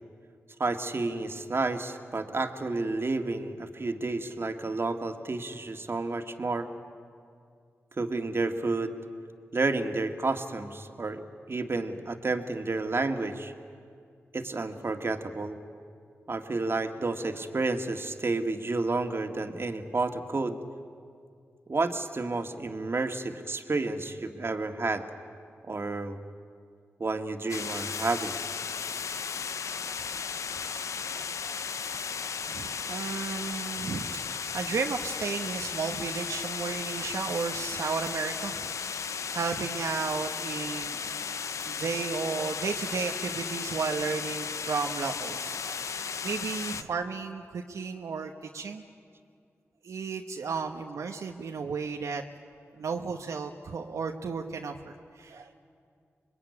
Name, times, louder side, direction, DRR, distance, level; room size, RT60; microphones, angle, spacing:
voice 1, 0.6-6.7 8.0-8.9 9.5-11.2 11.5-13.5 14.3-15.6 16.3-20.6 21.7-25.1 25.6-26.2 27.0-28.4, right 3 dB, 50° right, 6 dB, 1.9 m, -30 dB
sound 1, 27.5-46.8, left 6 dB, 80° left, 0.7 m, -35 dB
voice 2, 30.5-31.6 32.4-48.8 49.8-52.2 52.7-55.5, right 5 dB, 80° right, 3 dB, 1.1 m, -34 dB
25.5 x 21.5 x 9.7 m, 2.3 s
cardioid pair, 45°, 5 cm